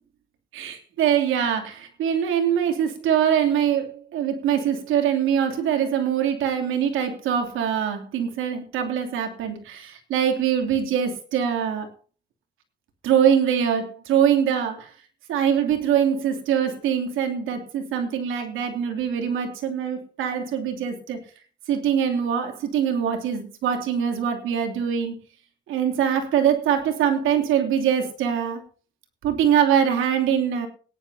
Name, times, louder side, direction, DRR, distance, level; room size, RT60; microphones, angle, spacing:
voice 1, 0.5-11.9 13.0-14.9 15.3-21.2 21.7-25.2 25.7-28.6 29.2-30.7, right 8 dB, 90° right, 4 dB, 3.0 m, -23 dB
17.5 x 10.5 x 2.8 m, 0.36 s
cardioid pair, 90°, 20 cm